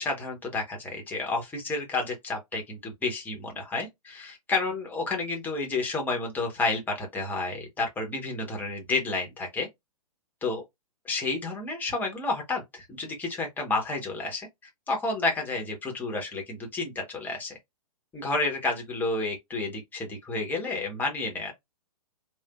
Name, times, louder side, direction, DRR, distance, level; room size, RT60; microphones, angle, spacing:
voice 1, 0.0-9.7 10.4-10.6 11.0-14.5 14.9-17.6 18.1-21.5, left 3 dB, 10° left, 1.0 m, -30 dB
3.3 x 2.5 x 2.4 m
figure-of-eight pair, 115°, 20 cm